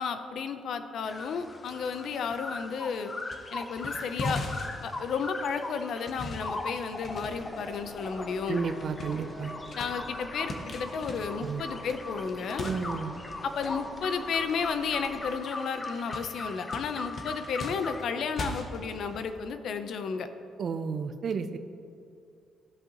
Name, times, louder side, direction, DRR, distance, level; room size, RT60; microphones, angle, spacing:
voice 1, 0.0-3.1 3.5-4.4 4.8-8.6 9.7-12.7 13.4-20.3, left 6 dB, 65° left, 9 dB, 0.6 m, -33 dB
sound 1, 1.0-18.0, left 2 dB, 25° left, 0.6 m, -40 dB
sound 2, 1.2-2.5 2.9-3.4 3.7-15.3 15.6-15.7 16.1-19.5, left 2 dB, 45° left, 0.9 m, -42 dB
sound 3, 7.1-15.3, right 1 dB, 25° right, 1.3 m, -47 dB
voice 2, 8.5-9.5 11.4-11.6 12.6-13.1 20.6-21.6, right 5 dB, 50° right, 10 dB, 0.5 m, -32 dB
15.0 x 5.5 x 3.0 m, 2.6 s
cardioid pair, 125°, 0 cm